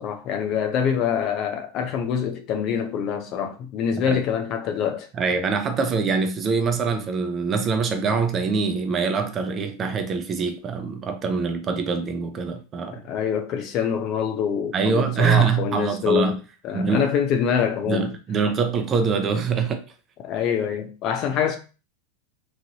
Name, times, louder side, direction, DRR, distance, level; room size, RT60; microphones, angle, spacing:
voice 1, 0.0-5.1 12.9-16.4 16.6-18.1 20.2-21.6, left 8 dB, 45° left, 0.6 m, -25 dB
voice 2, 5.1-13.0 14.7-16.4 16.7-17.1 17.9-19.8, right 5 dB, 30° right, 0.6 m, -24 dB
3.1 x 2.6 x 2.8 m
hypercardioid pair, 115°, 0 cm